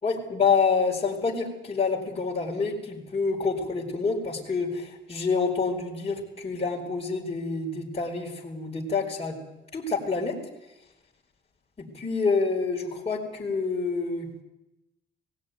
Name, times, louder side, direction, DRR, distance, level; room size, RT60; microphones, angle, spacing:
voice 1, 0.0-9.4 9.7-10.4 11.8-14.4, left 4 dB, 30° left, -4 dB, 4.6 m, -27 dB
19.5 x 16.0 x 9.4 m, 0.93 s
cardioid pair, 90°, 20 cm